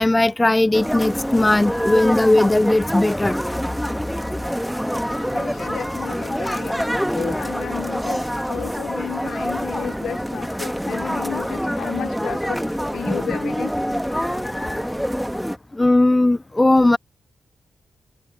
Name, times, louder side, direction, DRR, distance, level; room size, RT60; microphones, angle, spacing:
voice 1, 0.0-3.4 6.3-6.4 14.1-14.9 15.7-17.0, left 2 dB, 20° left, 0.3 m, -18 dB
sound 1, 0.7-15.6, equal, ahead, 2.0 m, -26 dB
voice 2, 5.3-6.8 7.1-12.6 12.9-13.7, left 10 dB, 85° left, 0.6 m, -32 dB
cardioid pair, 55°, 0 cm